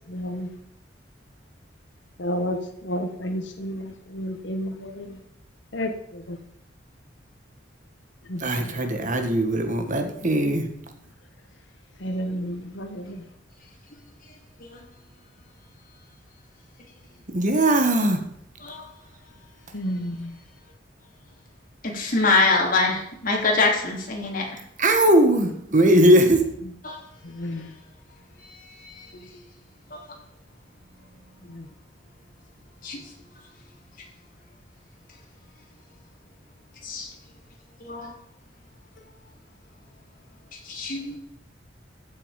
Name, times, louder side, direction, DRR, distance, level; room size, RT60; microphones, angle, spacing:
voice 1, 0.1-0.5 2.2-2.6 2.8-5.2 5.7-6.4 8.3-8.4 12.0-13.2 19.7-20.3 27.2-27.7 31.5-31.7, equal, 70° left, 5 dB, 1.3 m, -31 dB
voice 2, 8.4-10.7 17.3-18.2 24.8-26.5, right 1 dB, 45° right, 5 dB, 1.7 m, -19 dB
voice 3, 21.8-24.6 26.8-27.0 28.4-29.3 29.9-30.0 32.8-33.1 36.8-37.1 37.8-38.1 40.5-41.2, left 3 dB, 50° left, -1 dB, 3.4 m, -25 dB
14.5 x 7.6 x 5.2 m, 0.76 s
head